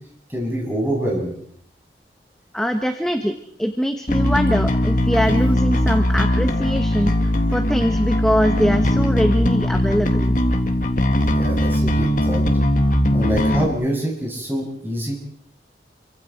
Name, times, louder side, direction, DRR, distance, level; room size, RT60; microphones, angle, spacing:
voice 1, 0.3-1.4 11.3-12.4 13.1-15.1, right 1 dB, 10° right, -3 dB, 7.8 m, -25 dB
voice 2, 2.5-10.2, equal, 5° left, 5 dB, 1.2 m, -22 dB
Bass guitar, 4.1-13.7, left 1 dB, 45° left, 2.0 m, -19 dB
30.0 x 24.0 x 4.6 m, 0.63 s
head